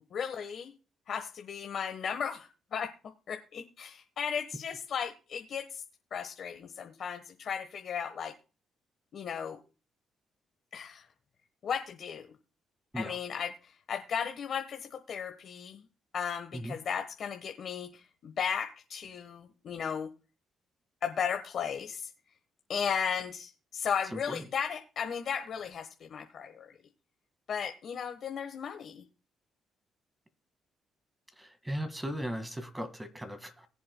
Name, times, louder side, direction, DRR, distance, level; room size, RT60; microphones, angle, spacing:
voice 1, 0.1-0.7 1.1-2.9 3.3-5.8 6.1-8.3 9.1-9.6 10.7-11.1 11.6-12.3 12.9-15.8 16.1-20.1 21.0-22.1 22.7-26.7 27.5-29.0, left 7 dB, 60° left, 4 dB, 1.2 m, -35 dB
voice 2, 24.1-24.4 31.4-33.7, equal, 10° right, 9 dB, 1.8 m, -37 dB
21.5 x 7.7 x 2.2 m, 0.33 s
cardioid pair, 90°, 0 cm